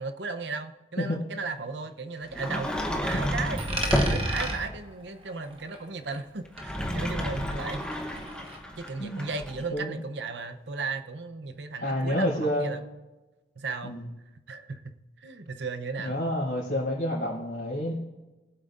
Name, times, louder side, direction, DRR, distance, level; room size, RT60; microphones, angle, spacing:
voice 1, 0.0-3.6 3.9-7.8 8.8-12.8 13.6-14.0 14.5-16.2, right 4 dB, 70° right, 9 dB, 0.7 m, -36 dB
Sliding door, 2.3-4.8 6.4-9.6, equal, 5° left, 0.9 m, -30 dB
Coin (dropping), 3.6-6.3 6.6-8.6, right 2 dB, 30° right, 1.3 m, -37 dB
voice 2, 9.0-9.3 9.7-10.0 11.8-12.7 13.8-14.1 16.0-17.9, equal, 60° left, -11 dB, 3.8 m, -29 dB
22.0 x 8.0 x 2.6 m, 1.1 s
head